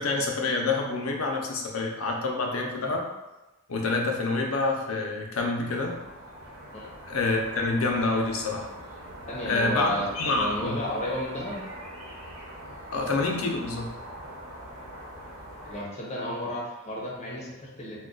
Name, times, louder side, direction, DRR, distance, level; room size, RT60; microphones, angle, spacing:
voice 1, 0.0-3.1 3.7-6.0 7.1-8.7 9.5-10.8 12.9-13.9, left 3 dB, 85° left, 1 dB, 0.5 m, -27 dB
sound 1, 5.6-15.8, right 1 dB, 80° right, 0.9 m, -43 dB
voice 2, 9.3-11.6 15.6-18.1, equal, 30° left, -4 dB, 0.6 m, -33 dB
2.3 x 2.2 x 3.7 m, 1.0 s
head